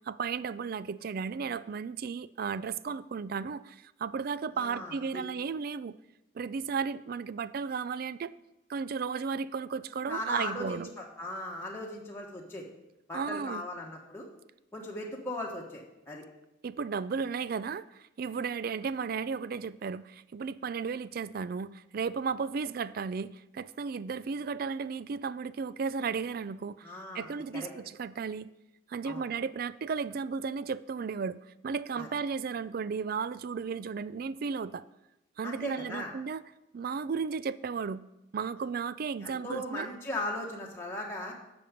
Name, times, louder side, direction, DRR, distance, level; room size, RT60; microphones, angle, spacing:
voice 1, 0.0-6.0 6.3-8.3 8.7-10.9 13.1-13.6 16.6-26.9 27.1-28.5 28.9-31.4 31.6-34.8 35.4-36.4 36.7-38.0 38.3-39.9, right 5 dB, 50° right, 0.4 m, -34 dB
voice 2, 4.5-5.2 10.1-12.6 13.1-14.3 14.7-16.2 26.8-27.7 29.0-29.3 32.0-32.1 35.4-36.1 39.2-41.3, left 1 dB, 15° left, 1.4 m, -38 dB
11.0 x 7.0 x 5.2 m
head